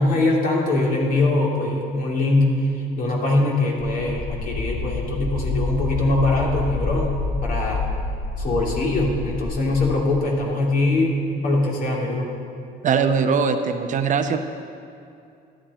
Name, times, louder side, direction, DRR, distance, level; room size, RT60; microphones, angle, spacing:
voice 1, 0.0-2.6 3.0-7.9 8.4-11.2 11.4-12.3, left 2 dB, 55° left, -2 dB, 2.9 m, -22 dB
sound 1, 3.8-9.9, left 3 dB, 30° left, 1.4 m, -28 dB
voice 2, 12.8-14.4, right 6 dB, 50° right, 7 dB, 0.7 m, -21 dB
13.5 x 11.5 x 4.3 m, 2.5 s
cardioid pair, 110°, 17 cm